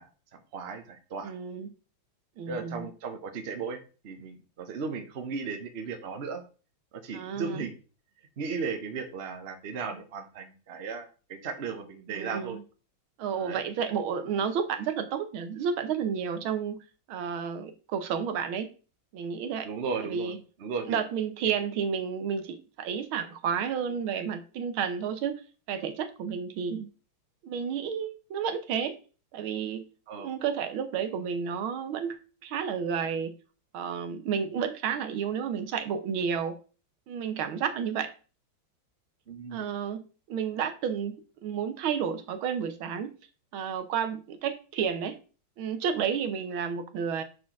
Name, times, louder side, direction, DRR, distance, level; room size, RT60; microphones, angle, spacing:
voice 1, 0.0-1.3 2.5-6.4 6.9-7.8 8.4-12.6 13.3-13.6 19.6-20.3 20.6-21.0 21.4-21.5 30.1-30.3 34.5-34.6 39.3-39.7, right 5 dB, 45° right, 6 dB, 0.9 m, -36 dB
voice 2, 1.2-1.7 2.4-2.9 7.1-7.7 12.1-12.6 13.2-16.8 17.1-18.7 19.1-19.7 20.0-20.4 20.9-25.4 25.7-26.9 27.4-29.0 29.3-29.9 30.2-32.2 32.4-33.3 33.7-36.6 37.1-38.1 39.5-43.1 43.5-45.2 45.6-47.2, right 7 dB, 80° right, 8 dB, 1.7 m, -31 dB
4.9 x 4.4 x 5.8 m, 0.35 s
omnidirectional pair, 2.2 m